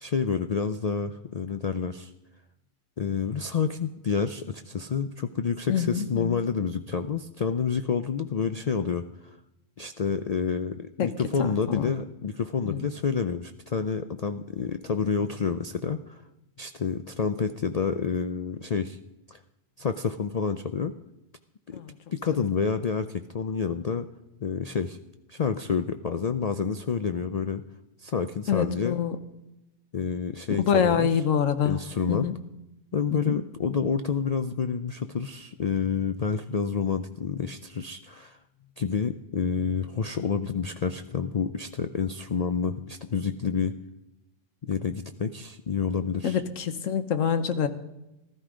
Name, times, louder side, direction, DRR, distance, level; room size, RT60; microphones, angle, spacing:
voice 1, 0.0-2.1 3.0-9.0 9.8-16.2 16.6-19.0 19.3-19.4 19.8-20.9 21.7-21.8 22.1-24.1 24.4-25.0 25.3-27.6 28.0-29.0 29.9-31.1 31.6-32.3 32.9-38.4 38.8-43.8 44.6-46.4, left 6 dB, 65° left, 9 dB, 0.3 m, -28 dB
voice 2, 5.7-6.4 11.0-11.1 11.4-12.0 12.7-12.8 21.7-21.9 28.5-29.2 30.5-31.8 32.1-32.3 33.1-33.3 46.2-47.7, left 7 dB, 85° left, 11 dB, 1.3 m, -26 dB
15.0 x 13.0 x 5.0 m, 0.94 s
omnidirectional pair, 1.3 m